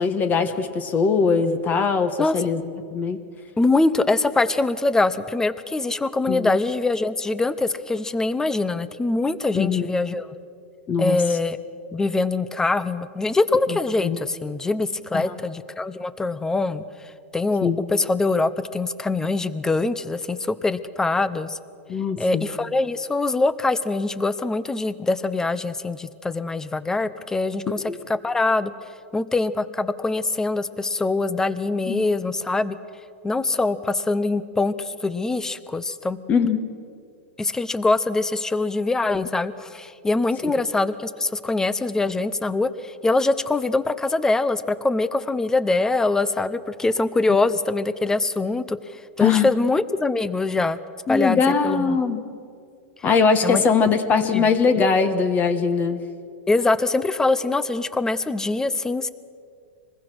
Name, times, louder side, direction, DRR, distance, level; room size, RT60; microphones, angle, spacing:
voice 1, 0.0-2.6 2.9-3.2 6.3-6.6 9.5-9.9 10.9-11.2 14.0-14.2 15.1-15.3 17.6-17.8 21.9-22.4 27.7-28.0 31.9-32.0 36.3-36.6 40.4-40.5 49.2-49.5 51.1-52.2 53.0-56.0, left 5 dB, 25° left, 9 dB, 1.4 m, -21 dB
voice 2, 3.6-10.3 11.0-11.6 11.9-16.8 17.3-21.6 22.2-28.7 29.1-32.8 33.2-36.2 37.4-48.8 49.2-50.8 51.1-52.0 53.4-53.6 54.3-54.5 56.5-59.1, left 3 dB, 10° left, 14 dB, 0.8 m, -23 dB
26.5 x 20.5 x 6.2 m, 2.3 s
supercardioid pair, 140°, 7 cm